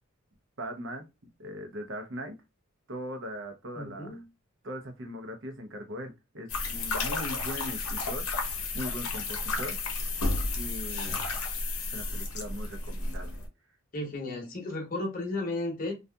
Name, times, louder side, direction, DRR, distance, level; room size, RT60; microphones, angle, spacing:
voice 1, 0.6-1.1 1.4-2.3 2.9-4.2 4.6-9.8 10.6-11.2 11.9-13.4, equal, 60° right, 0.7 m, -40 dB
voice 2, 3.8-4.2 13.9-15.9, left 2 dB, 40° left, 0.8 m, -34 dB
sound 1, 6.5-13.5, left 3 dB, 85° left, 0.7 m, -32 dB
2.6 x 2.4 x 2.2 m
head